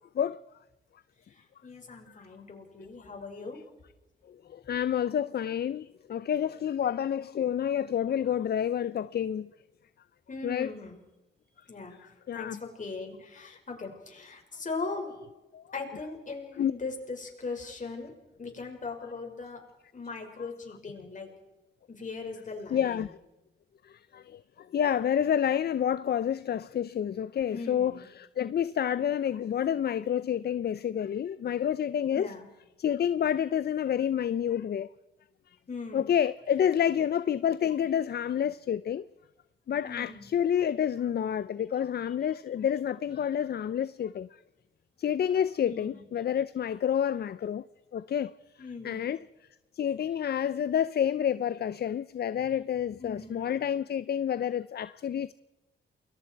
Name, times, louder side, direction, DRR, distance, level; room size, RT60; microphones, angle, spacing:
voice 1, 1.3-3.6 10.3-11.0 11.7-12.0 12.3-15.1 15.7-18.1 18.4-19.6 19.9-21.3 21.9-23.1 27.5-28.1 32.1-32.5 35.7-36.1 39.8-40.3 45.6-46.1 48.6-49.1 53.0-53.5, left 4 dB, 45° left, 5.8 m, -39 dB
voice 2, 4.5-9.5 10.4-10.7 12.3-12.6 15.5-15.6 16.6-16.7 22.7-23.1 23.9-24.4 24.7-32.3 32.8-34.9 35.9-39.0 39.7-44.3 45.0-47.6 47.9-48.3 48.8-49.2 49.8-55.3, left 9 dB, 60° left, 0.6 m, -29 dB
29.0 x 22.0 x 4.7 m
cardioid pair, 90°, 19 cm